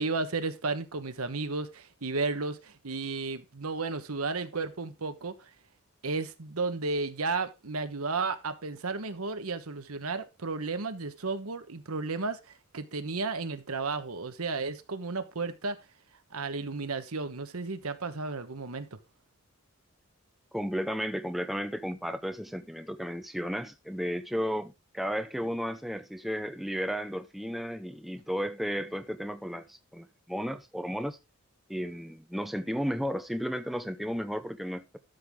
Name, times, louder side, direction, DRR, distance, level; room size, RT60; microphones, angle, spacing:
voice 1, 0.0-5.4 6.0-12.4 12.7-15.8 16.3-19.0, right 3 dB, 85° right, 1.2 m, -33 dB
voice 2, 20.5-31.2 31.7-35.0, equal, ahead, 0.7 m, -33 dB
12.5 x 6.7 x 3.7 m
head